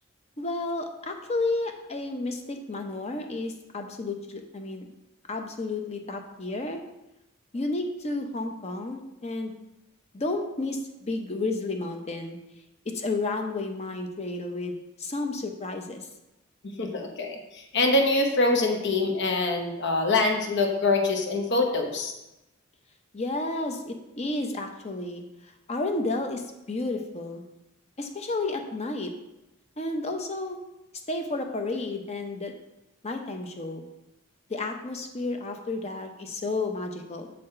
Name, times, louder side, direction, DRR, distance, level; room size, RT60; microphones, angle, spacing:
voice 1, 0.4-4.9 5.3-6.8 7.5-9.5 10.1-12.4 12.9-16.1 23.1-25.2 25.7-27.4 28.0-29.1 29.8-30.6 31.1-32.5 33.0-33.9 34.5-37.3, left 2 dB, 30° left, 4 dB, 0.7 m, -31 dB
voice 2, 16.6-22.1, left 2 dB, 55° left, 3 dB, 0.9 m, -24 dB
7.5 x 4.2 x 4.3 m, 0.92 s
head